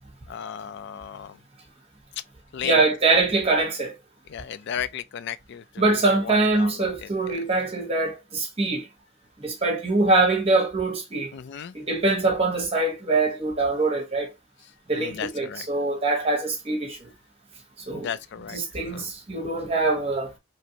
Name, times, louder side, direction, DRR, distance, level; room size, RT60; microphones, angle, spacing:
voice 1, 0.3-1.4 2.5-2.8 4.3-7.1 11.3-11.8 14.9-15.7 17.9-18.6 18.9-19.0, left 8 dB, 55° left, 0.3 m, -35 dB
voice 2, 2.6-3.9 5.8-8.9 9.4-11.3 11.7-14.3 14.9-17.0 17.9-18.1 18.4-20.3, right 3 dB, 30° right, 1.1 m, -23 dB
3.1 x 2.5 x 2.8 m
head